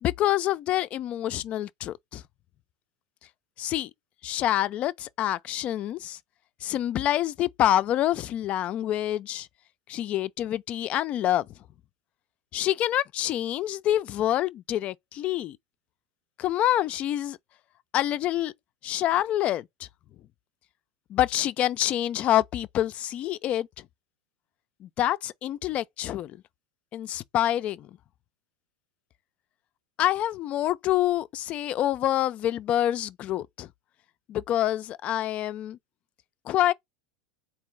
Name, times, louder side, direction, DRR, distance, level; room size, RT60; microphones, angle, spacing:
voice 1, 0.0-2.2 3.6-3.9 4.2-6.2 6.6-9.5 9.9-11.5 12.5-15.6 16.4-17.4 17.9-18.5 18.8-19.7 21.1-23.7 24.8-26.4 26.9-27.9 30.0-33.7 34.3-35.8 36.5-36.7, left 12 dB, 40° left, 0.4 m, -26 dB
3.7 x 2.9 x 3.2 m
supercardioid pair, 120°, 3 cm